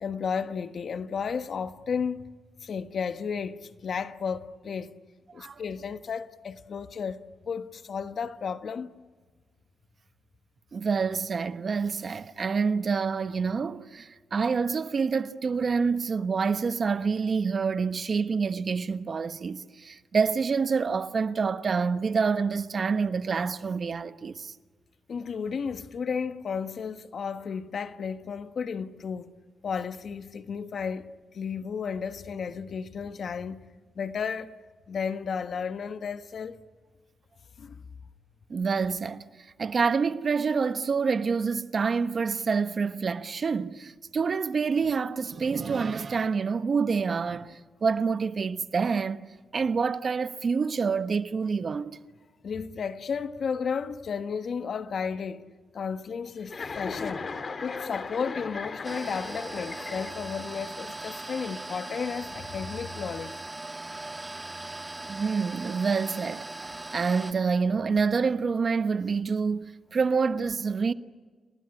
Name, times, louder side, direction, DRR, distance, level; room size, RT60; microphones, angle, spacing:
voice 1, 0.0-2.2 2.6-5.0 5.3-8.9 25.1-29.3 29.6-31.1 31.3-33.7 33.9-34.5 34.9-36.6 37.6-37.8 52.4-57.3 57.6-63.4, left 6 dB, 60° left, 1.4 m, -33 dB
voice 2, 10.7-24.5 38.5-39.2 39.6-52.0 65.1-70.9, right 5 dB, 50° right, 1.2 m, -27 dB
Chuckle chortle, 56.5-60.5, left 4 dB, 45° left, 2.2 m, -37 dB
sound 1, 58.8-67.3, right 2 dB, 20° right, 1.6 m, -39 dB
29.5 x 19.0 x 9.9 m
cardioid pair, 70°, 0 cm